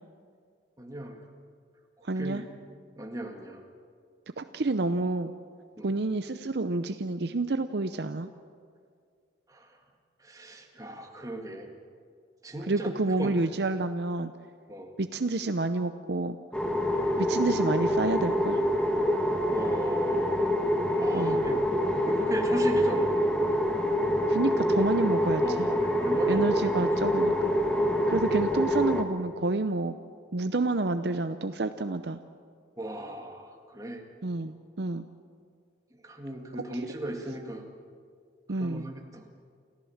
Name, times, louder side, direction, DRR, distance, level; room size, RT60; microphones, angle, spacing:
voice 1, 0.8-1.2 2.2-2.4 3.0-3.6 5.8-5.9 9.5-9.8 10.2-11.7 12.4-12.9 13.2-13.5 14.7-14.9 19.5-20.5 21.0-21.6 22.1-23.1 25.4-26.9 32.8-34.1 36.0-37.7 38.6-39.3, right 1 dB, 20° right, 3 dB, 2.0 m, -37 dB
voice 2, 2.0-2.5 4.4-5.3 5.8-8.3 12.7-14.3 15.0-16.4 17.2-18.6 21.1-21.5 24.3-25.7 26.3-27.3 28.1-30.0 30.3-32.2 34.2-35.1 38.5-38.9, right 2 dB, 60° right, 9 dB, 0.7 m, -29 dB
sound 1, 16.5-29.0, equal, 5° left, 1.5 m, -26 dB
29.0 x 14.5 x 7.3 m, 2.1 s
head